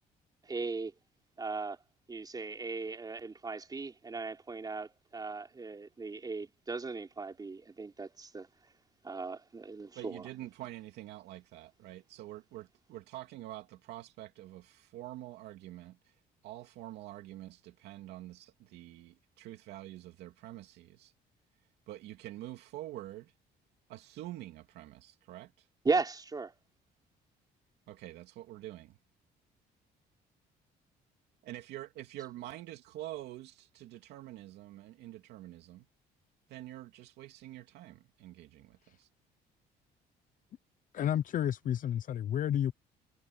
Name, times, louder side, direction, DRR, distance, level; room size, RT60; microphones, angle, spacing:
voice 1, 0.4-0.9 1.4-1.8 2.1-8.5 9.0-10.3 25.8-26.5, right 4 dB, 25° right, 4.2 m, -37 dB
voice 2, 9.9-16.2 16.4-21.1 21.9-23.3 23.9-25.7 27.9-29.0 31.4-35.9 36.5-39.1, right 15 dB, 80° right, 2.6 m, -46 dB
voice 3, 40.9-42.7, left 10 dB, 50° left, 0.8 m, -31 dB
cardioid pair, 110°, 17 cm